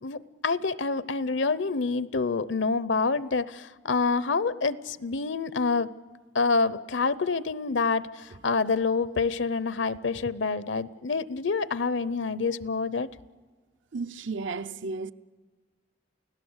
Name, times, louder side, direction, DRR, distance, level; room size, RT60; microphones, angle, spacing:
voice 1, 0.0-5.9 6.3-13.1, left 4 dB, 80° left, 0.7 m, -27 dB
voice 2, 13.9-15.1, right 4 dB, 80° right, 0.7 m, -33 dB
29.5 x 17.0 x 8.0 m
head